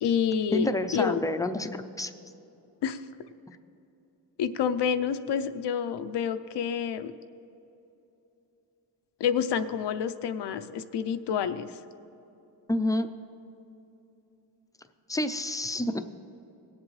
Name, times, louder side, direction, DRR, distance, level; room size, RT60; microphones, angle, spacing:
voice 1, 0.0-1.2 2.8-3.0 4.4-7.1 9.2-11.7, left 7 dB, 80° left, 11 dB, 0.6 m, -28 dB
voice 2, 0.5-2.1 12.7-13.1 15.1-16.0, left 1 dB, 10° left, 8 dB, 0.4 m, -28 dB
18.0 x 7.4 x 3.1 m, 2.9 s
wide cardioid pair, 100°, 41 cm